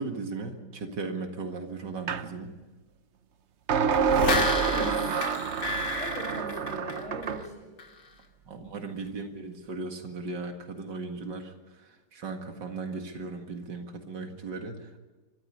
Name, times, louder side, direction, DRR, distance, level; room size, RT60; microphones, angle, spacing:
voice 1, 0.0-2.5 8.5-11.5 11.8-15.0, right 3 dB, 90° right, 4 dB, 2.6 m, -37 dB
sound 1, 2.1-2.3 3.7-7.5, right 6 dB, 50° right, 1.0 m, -28 dB
sound 2, 3.9-7.5 7.8-7.9, left 2 dB, 80° left, 2.9 m, -31 dB
voice 2, 3.9-5.5 6.0-7.8, equal, 5° left, 0 dB, 7.4 m, -39 dB
25.0 x 14.0 x 9.9 m, 1.2 s
omnidirectional pair, 1.8 m